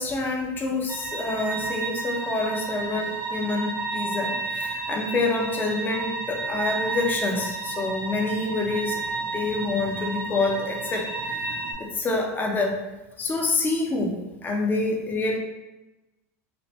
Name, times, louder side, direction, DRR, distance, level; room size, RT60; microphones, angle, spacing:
voice 1, 0.0-9.0 9.3-12.8 13.2-15.4, left 3 dB, 25° left, 1 dB, 0.6 m, -27 dB
sound 1, 0.9-11.7, right 3 dB, 30° right, 0.6 m, -31 dB
2.9 x 2.1 x 3.0 m, 1.0 s
hypercardioid pair, 105°, 8 cm